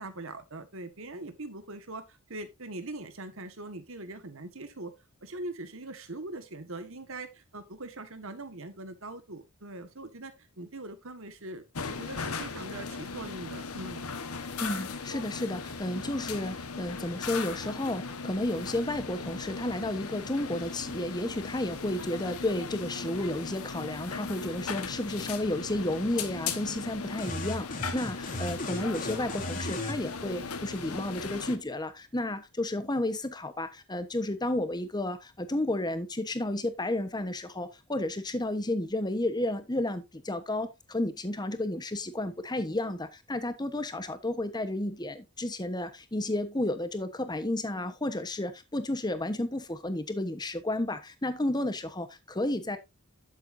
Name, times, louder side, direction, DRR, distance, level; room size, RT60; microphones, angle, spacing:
voice 1, 0.0-4.9 5.2-14.1, right 2 dB, 60° right, 1.6 m, -42 dB
sound 1, 11.7-31.6, left 5 dB, 85° left, 1.4 m, -38 dB
voice 2, 14.6-52.8, left 1 dB, 20° left, 1.1 m, -32 dB
sound 2, 27.2-30.0, left 1 dB, 35° left, 2.9 m, -36 dB
11.5 x 7.8 x 2.7 m
head